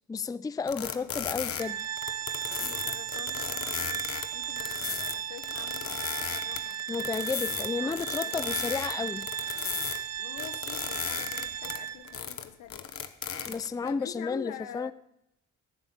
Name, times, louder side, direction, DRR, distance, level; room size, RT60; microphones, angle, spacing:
voice 1, 0.1-1.8 6.9-9.3 13.5-14.9, left 5 dB, 10° left, 17 dB, 0.4 m, -32 dB
voice 2, 0.7-1.1 2.6-6.8 7.8-8.6 10.2-12.9 13.8-14.9, left 10 dB, 85° left, 11 dB, 1.3 m, -46 dB
sound 1, 0.7-10.0 10.4-13.9, left 7 dB, 50° left, 1.3 m, -35 dB
Organ, 1.6-12.2, right 10 dB, 55° right, 1.0 m, -36 dB
16.0 x 7.0 x 8.4 m, 0.81 s
cardioid pair, 90°, 30 cm